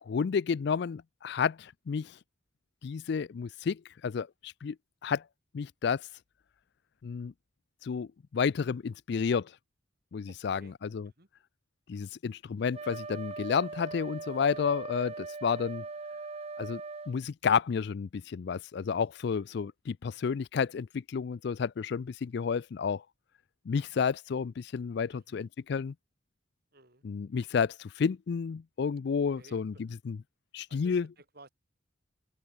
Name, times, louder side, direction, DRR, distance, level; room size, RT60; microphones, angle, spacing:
voice 1, 0.0-2.2 2.8-4.8 5.0-5.2 5.5-6.1 7.0-7.3 7.8-9.5 10.1-11.1 11.9-15.8 16.6-23.0 23.7-25.9 27.0-30.2 30.5-31.1, left 6 dB, 60° left, 0.4 m, -31 dB
voice 2, 10.3-10.7 11.0-11.3 25.1-25.4 26.7-27.0 29.3-30.0 30.7-31.5, right 2 dB, 50° right, 6.7 m, -56 dB
Wind instrument woodwind instrument, 12.7-17.2, right 3 dB, 30° right, 0.6 m, -40 dB
open air
head